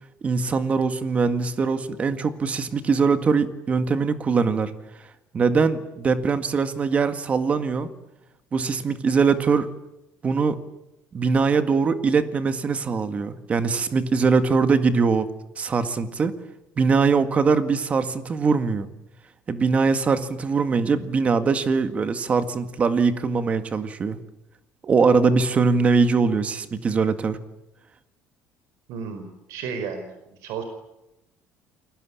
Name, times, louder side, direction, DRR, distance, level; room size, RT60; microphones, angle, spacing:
voice 1, 0.2-4.7 5.3-7.9 8.5-9.7 10.2-10.6 11.1-15.3 15.6-16.3 16.8-18.9 19.5-24.2 24.8-27.4, right 5 dB, 25° right, 10 dB, 1.9 m, -22 dB
voice 2, 28.9-30.6, right 6 dB, 70° right, 6 dB, 4.9 m, -33 dB
29.0 x 23.0 x 8.7 m, 0.92 s
cardioid pair, 165°, 5 cm